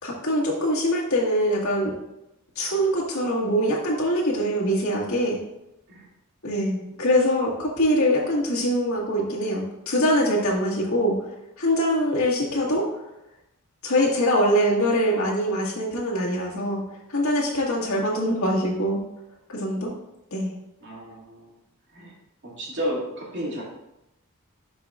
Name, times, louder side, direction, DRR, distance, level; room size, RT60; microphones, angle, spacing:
voice 1, 0.0-1.9 2.6-5.4 6.4-11.3 11.6-12.8 13.8-16.8 17.1-19.0 19.5-19.9 20.3-20.5, equal, 85° left, -5 dB, 1.9 m, -23 dB
voice 2, 20.8-21.6 21.9-22.1 22.4-23.6, equal, 60° right, -5 dB, 2.4 m, -32 dB
11.0 x 4.9 x 2.5 m, 0.87 s
head